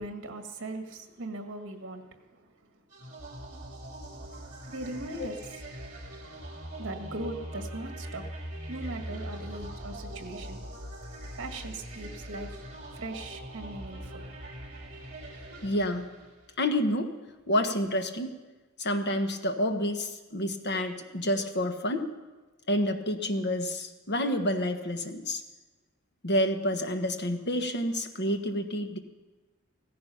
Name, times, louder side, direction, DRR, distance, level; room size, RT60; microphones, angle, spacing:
voice 1, 0.0-2.8 4.7-5.4 6.8-8.3 8.7-10.6 11.4-12.6 12.9-14.2, right 2 dB, 60° right, 5 dB, 1.7 m, -39 dB
sound 1, 2.9-16.6, right 1 dB, 35° right, 3.2 m, -42 dB
voice 2, 15.6-16.1 16.6-17.2 17.5-18.3 18.8-22.1 22.7-25.4 26.2-29.0, left 1 dB, 50° left, 6 dB, 1.3 m, -29 dB
16.5 x 14.5 x 5.7 m, 1.3 s
head